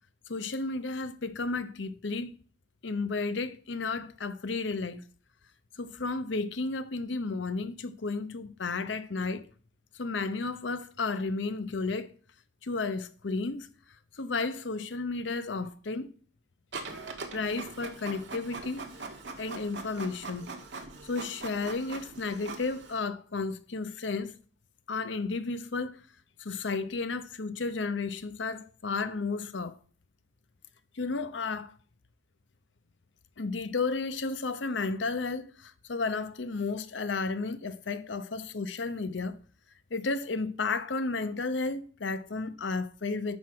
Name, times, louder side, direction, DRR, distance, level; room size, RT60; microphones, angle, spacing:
voice 1, 0.3-2.3 2.8-5.0 5.8-9.5 9.9-12.1 12.6-13.7 14.2-16.1 17.3-18.9 19.4-20.5 21.0-24.4 24.9-26.0 26.4-29.8 30.9-31.7 33.4-39.4 39.9-43.4, left 3 dB, 85° left, 0.8 m, -33 dB
Printer, 16.7-23.0, right 3 dB, 75° right, 1.5 m, -42 dB
10.5 x 6.1 x 4.8 m
head